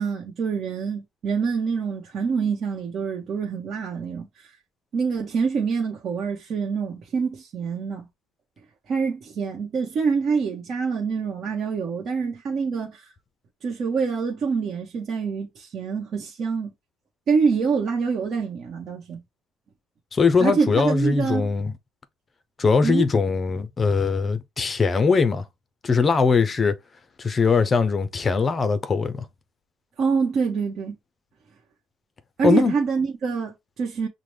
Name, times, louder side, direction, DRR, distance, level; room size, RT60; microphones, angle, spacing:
voice 1, 0.0-4.5 4.9-8.1 8.9-13.1 13.6-16.7 17.3-19.2 20.4-21.5 22.8-23.1 30.0-30.9 32.4-34.1, right 5 dB, 50° right, 1.0 m, -26 dB
voice 2, 20.1-21.7 22.6-25.5 25.8-26.8 27.2-29.3 32.4-32.7, left 5 dB, 30° left, 0.5 m, -21 dB
5.8 x 2.1 x 3.2 m
cardioid pair, 125°, 0 cm